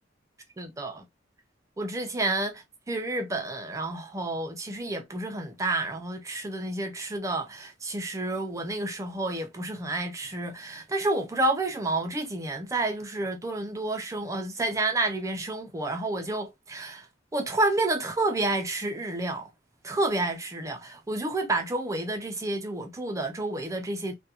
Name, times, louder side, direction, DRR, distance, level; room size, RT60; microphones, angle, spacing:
voice 1, 0.6-1.0 1.8-17.1 17.3-19.5 19.8-24.1, right 2 dB, 15° right, 0.4 m, -30 dB
2.4 x 2.2 x 2.7 m
head